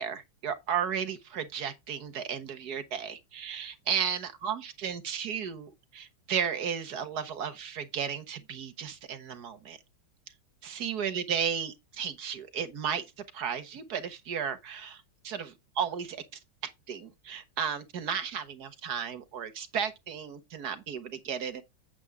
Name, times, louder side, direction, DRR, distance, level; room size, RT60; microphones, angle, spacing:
voice 1, 0.0-9.8 10.6-13.0 13.3-16.2 16.9-21.6, right 7 dB, 55° right, 1.6 m, -34 dB
8.2 x 7.7 x 3.5 m
omnidirectional pair, 2.2 m